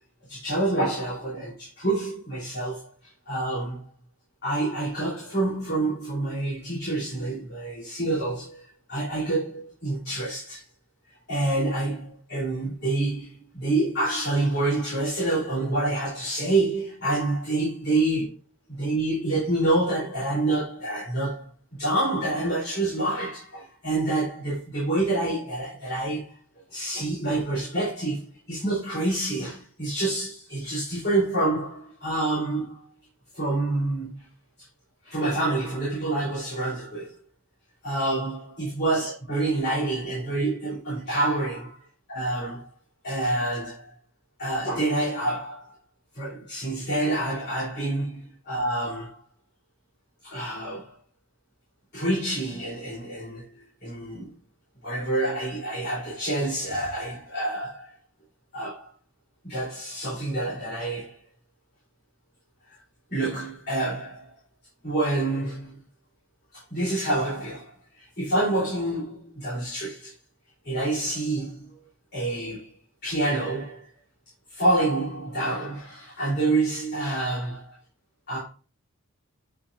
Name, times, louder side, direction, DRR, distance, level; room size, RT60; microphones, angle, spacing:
voice 1, 0.3-2.9 3.3-3.8 4.4-10.6 11.0-18.3 18.7-21.5 21.8-26.3 26.7-32.9 33.3-34.3 35.0-37.1 37.8-42.7 43.0-43.9 44.4-45.7 46.1-49.2 50.2-50.9 51.9-54.3 54.8-57.9 58.5-58.9 59.4-61.1 63.1-64.3 64.8-65.7 66.5-70.1 70.6-71.6 72.1-72.7 73.0-73.8 74.5-77.6 78.3-78.4, right 2 dB, 50° left, 3.5 m, -27 dB
8.7 x 4.8 x 2.6 m
head